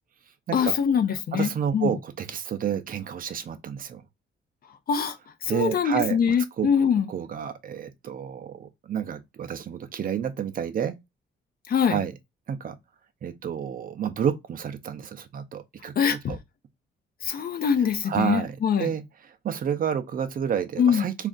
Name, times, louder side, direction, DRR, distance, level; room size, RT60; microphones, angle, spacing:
voice 1, 0.5-1.9 4.9-5.2 5.4-7.1 11.7-12.0 16.0-16.3 17.2-18.9 20.8-21.0, left 7 dB, 50° left, 0.5 m, -23 dB
voice 2, 1.3-4.0 5.5-6.7 7.1-11.0 11.9-12.1 12.5-12.8 13.2-16.4 18.0-21.3, right 8 dB, 45° right, 0.5 m, -30 dB
2.5 x 2.3 x 3.6 m
cardioid pair, 90°, 20 cm